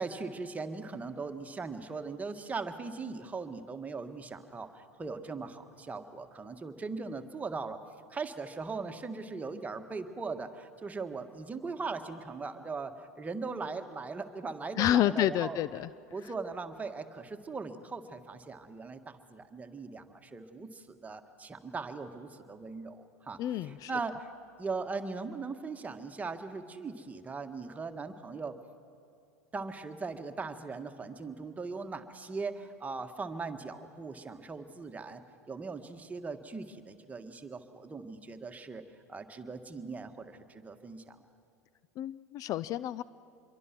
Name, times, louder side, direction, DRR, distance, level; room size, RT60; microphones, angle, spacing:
voice 1, 0.0-7.8 8.1-15.6 16.1-24.3 24.6-28.6 29.5-35.2 35.5-41.2, right 4 dB, 15° right, 6 dB, 1.7 m, -39 dB
voice 2, 14.8-15.9 23.4-23.9 42.0-43.0, left 12 dB, 45° left, 17 dB, 0.5 m, -29 dB
26.5 x 23.0 x 6.1 m, 2.6 s
hypercardioid pair, 85°, 8 cm